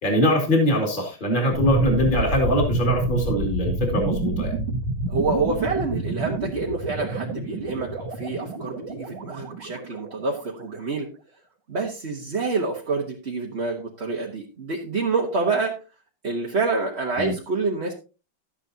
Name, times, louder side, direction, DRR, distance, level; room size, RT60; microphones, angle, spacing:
voice 1, 0.0-4.5 17.2-17.3, equal, 25° left, 1 dB, 2.6 m, -22 dB
sound 1, 1.5-10.4, right 2 dB, 75° right, 2.2 m, -28 dB
voice 2, 5.1-11.1 11.7-15.8 16.2-17.9, right 3 dB, 35° right, 0 dB, 1.3 m, -27 dB
12.5 x 9.8 x 2.8 m, 0.32 s
omnidirectional pair, 2.3 m